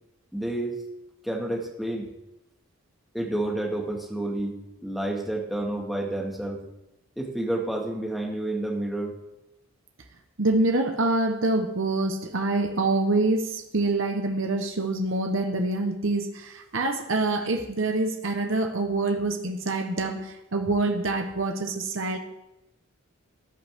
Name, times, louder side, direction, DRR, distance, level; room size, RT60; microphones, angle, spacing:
voice 1, 0.3-0.8 1.2-2.1 3.1-6.6 7.2-9.2, right 1 dB, ahead, -2 dB, 1.9 m, -30 dB
voice 2, 10.4-22.2, right 2 dB, 65° right, 4 dB, 1.1 m, -26 dB
14.0 x 11.0 x 3.7 m, 0.88 s
head